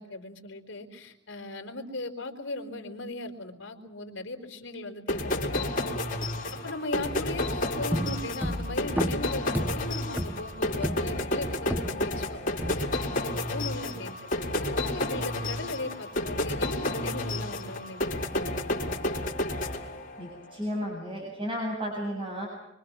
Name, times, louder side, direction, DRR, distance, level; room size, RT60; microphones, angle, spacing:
voice 1, 0.0-6.0 6.6-14.2 14.6-19.0, left 2 dB, 70° left, 4 dB, 4.2 m, -38 dB
sound 1, 5.1-20.4, left 1 dB, 45° left, 4.7 m, -31 dB
sound 2, 7.5-12.2 12.6-13.2, equal, 10° right, 0.9 m, -34 dB
voice 2, 20.2-22.5, equal, 30° right, -2 dB, 7.4 m, -33 dB
26.0 x 25.0 x 6.1 m, 0.91 s
head